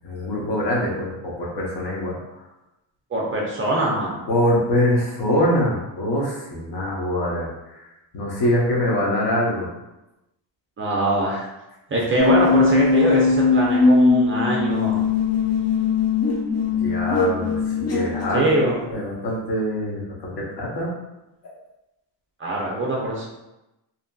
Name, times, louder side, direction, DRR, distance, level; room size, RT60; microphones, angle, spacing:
voice 1, 0.0-2.2 4.3-7.8 8.1-9.7 16.7-20.9 21.4-21.6, left 1 dB, 60° left, -3 dB, 0.9 m, -24 dB
voice 2, 3.1-4.2 10.8-11.5 11.9-15.0 18.3-18.8 22.4-23.3, right 1 dB, 30° right, -3 dB, 0.4 m, -23 dB
sound 1, 12.2-18.9, left 4 dB, 35° left, 0.5 m, -20 dB
2.8 x 2.5 x 2.2 m, 0.96 s
cardioid pair, 155°, 44 cm